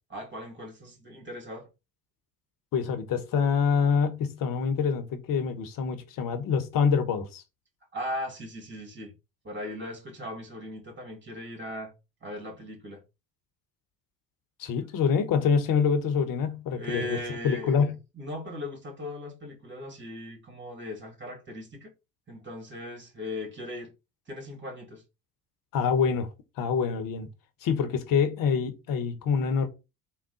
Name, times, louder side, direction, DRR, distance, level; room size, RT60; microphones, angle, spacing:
voice 1, 0.1-1.7 7.9-9.1 9.4-11.9 12.2-13.0 16.7-17.7 18.1-21.9 22.3-23.9 24.3-25.0, left 1 dB, 25° right, 2.0 m, -38 dB
voice 2, 2.7-7.4 14.6-18.0 25.7-26.3 26.6-27.3 27.6-29.7, left 6 dB, 50° left, 0.9 m, -26 dB
3.5 x 2.3 x 3.8 m
figure-of-eight pair, 55°, 43 cm